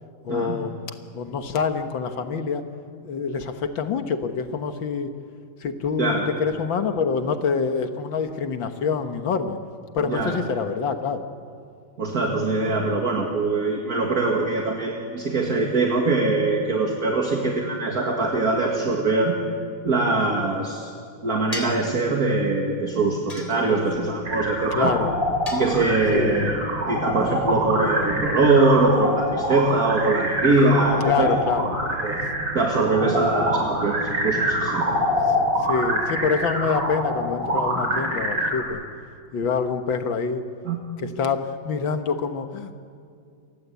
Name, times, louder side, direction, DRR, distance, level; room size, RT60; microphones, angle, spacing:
voice 1, 0.2-0.7 1.1-2.6 3.0-5.1 5.6-9.6 9.9-11.2 23.7-24.0 24.7-25.1 26.1-26.5 31.0-31.7 35.7-38.8 39.3-40.4 41.0-42.7, left 5 dB, 70° left, 7 dB, 2.2 m, -26 dB
voice 2, 10.1-10.4 12.0-19.4 19.8-20.9 21.2-24.9 25.5-26.6 26.9-31.3 32.0-32.2 32.5-34.8 40.7-40.8, right 3 dB, 45° right, 1 dB, 2.4 m, -22 dB
sound 1, 21.5-21.9 23.3-24.0 25.5-26.2, left 2 dB, 15° left, 3.6 m, -36 dB
sound 2, 24.2-38.6, equal, 70° right, 4.8 m, -25 dB
28.5 x 23.5 x 8.4 m, 2.4 s
omnidirectional pair, 2.2 m